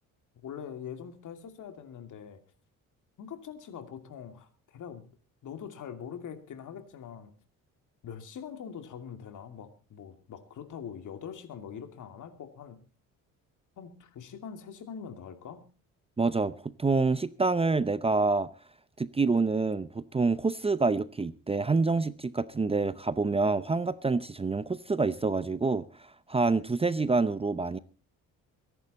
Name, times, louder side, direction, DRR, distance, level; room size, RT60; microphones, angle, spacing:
voice 1, 0.4-2.4 3.2-5.0 5.4-7.3 8.0-12.8 13.8-15.6, left 7 dB, 60° left, 2.6 m, -43 dB
voice 2, 16.2-16.5 16.8-18.5 19.0-25.8 26.3-27.8, right 3 dB, 15° right, 0.7 m, -27 dB
23.0 x 11.0 x 4.2 m
cardioid pair, 90°, 34 cm